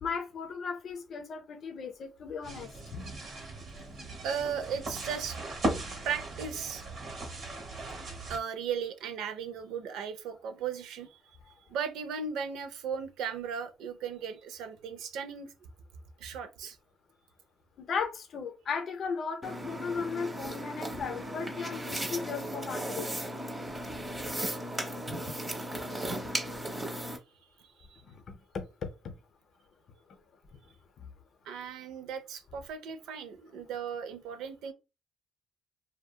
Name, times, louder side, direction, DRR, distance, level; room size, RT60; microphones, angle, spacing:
voice 1, 0.0-3.2 17.8-23.2 24.0-24.1 28.0-29.1 30.1-30.2 31.0-31.1, left 5 dB, 60° left, 0.5 m, -36 dB
sound 1, 2.4-8.4, right 1 dB, 60° right, 1.0 m, -38 dB
voice 2, 4.2-5.4 6.0-6.8 8.3-11.2 11.7-15.5 16.2-16.8 27.9-28.0 31.5-34.7, right 7 dB, 90° right, 0.4 m, -36 dB
sound 2, 19.4-27.2, right 1 dB, 20° right, 0.7 m, -36 dB
2.7 x 2.2 x 2.2 m
cardioid pair, 90°, 0 cm